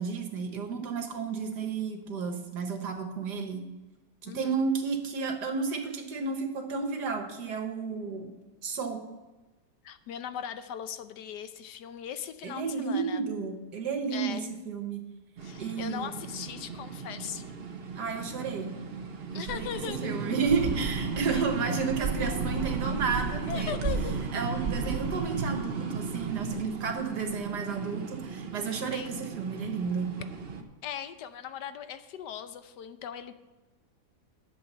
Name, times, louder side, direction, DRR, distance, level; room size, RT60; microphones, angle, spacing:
voice 1, 0.0-3.6 4.2-8.3 8.6-9.0 12.4-15.0 15.6-16.1 18.0-18.7 19.3-19.7 20.0-23.7 24.3-30.1, right 5 dB, 75° right, 4 dB, 1.9 m, -32 dB
voice 2, 4.2-4.6 9.8-13.2 14.1-14.5 15.4-17.6 19.3-20.3 21.3-21.4 23.5-24.2 28.9-29.2 30.8-33.4, left 9 dB, 80° left, 11 dB, 1.3 m, -39 dB
sound 1, 15.4-30.6, right 4 dB, 40° right, 1.0 m, -34 dB
11.0 x 7.6 x 5.5 m, 1.1 s
omnidirectional pair, 1.8 m